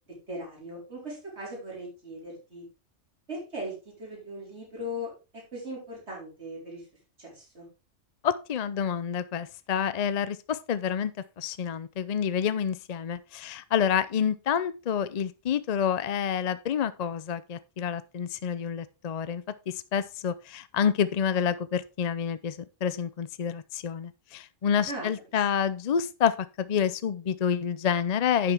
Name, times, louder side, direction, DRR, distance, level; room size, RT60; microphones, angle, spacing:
voice 1, 0.3-2.6 3.3-3.7 4.0-6.8 7.2-7.7 24.9-25.1, equal, 60° right, 5.0 m, -38 dB
voice 2, 8.2-11.1 11.4-19.4 19.9-28.5, left 8 dB, 50° left, 0.5 m, -28 dB
10.5 x 6.9 x 3.5 m
omnidirectional pair, 1.3 m